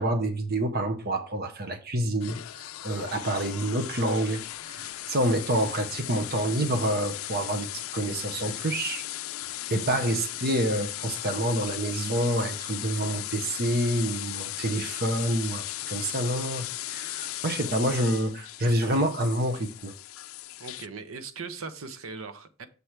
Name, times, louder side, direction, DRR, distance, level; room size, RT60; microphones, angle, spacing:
voice 1, 0.0-9.0 9.7-19.9, right 1 dB, 50° right, 1.0 m, -28 dB
sound 1, 2.2-20.9, left 14 dB, 80° left, 0.4 m, -37 dB
voice 2, 20.6-22.7, right 4 dB, 85° right, 0.8 m, -39 dB
6.8 x 3.3 x 5.9 m
head